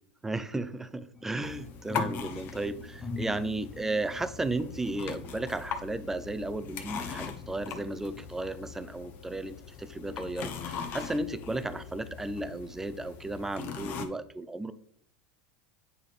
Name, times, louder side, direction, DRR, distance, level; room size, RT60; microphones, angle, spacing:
voice 1, 0.2-14.7, right 2 dB, 10° right, 13 dB, 0.5 m, -34 dB
sound 1, 1.1-6.9 7.4-8.5 9.0-9.2, left 2 dB, 10° left, 0.9 m, -44 dB
sound 2, 1.4-14.1, left 6 dB, 50° left, 1.0 m, -40 dB
9.0 x 4.1 x 3.5 m, 0.65 s
supercardioid pair, 120°, 4 cm